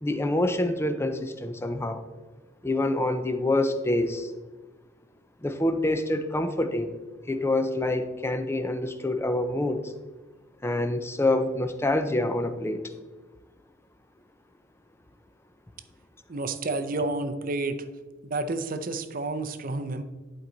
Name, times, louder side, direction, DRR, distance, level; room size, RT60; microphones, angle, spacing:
voice 1, 0.0-2.0 2.6-4.3 5.4-6.9 7.3-9.9 10.6-12.9, left 1 dB, 15° left, 9 dB, 0.5 m, -26 dB
voice 2, 16.3-17.8 18.2-20.0, right 2 dB, 45° right, 9 dB, 0.5 m, -30 dB
11.5 x 4.5 x 3.9 m, 1.3 s
head